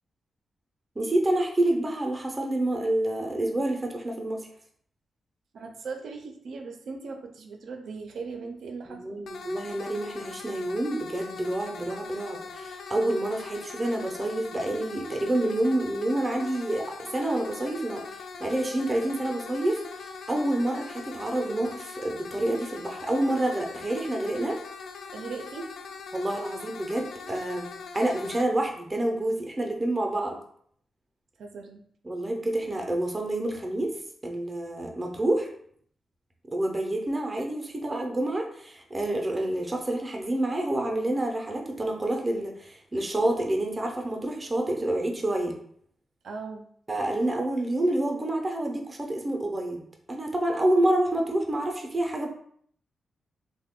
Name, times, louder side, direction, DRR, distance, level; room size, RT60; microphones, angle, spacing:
voice 1, 1.0-4.4 8.9-16.8 17.1-18.0 18.4-19.8 20.3-24.6 26.1-27.6 27.9-30.4 32.0-33.9 34.2-35.5 36.5-45.6 46.9-52.3, right 1 dB, 15° right, 1 dB, 0.5 m, -28 dB
voice 2, 5.5-9.2 25.1-25.7 31.4-31.8 46.2-46.7, right 4 dB, 75° right, 4 dB, 0.4 m, -38 dB
sound 1, 9.3-28.4, left 4 dB, 75° left, 0.3 m, -41 dB
3.1 x 2.1 x 3.6 m, 0.62 s
wide cardioid pair, 160°, 0 cm